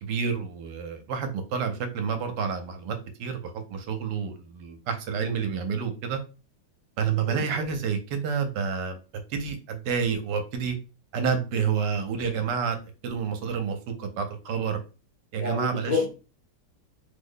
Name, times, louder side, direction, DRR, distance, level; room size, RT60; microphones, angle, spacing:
voice 1, 0.0-6.2 7.0-9.0 9.3-10.8 11.1-12.8 13.0-14.8 15.3-16.1, right 6 dB, 70° right, 7 dB, 1.2 m, -29 dB
voice 2, 7.3-7.7 15.4-16.1, left 4 dB, 75° left, -5 dB, 0.4 m, -29 dB
3.2 x 2.0 x 3.8 m, 0.32 s
omnidirectional pair, 2.0 m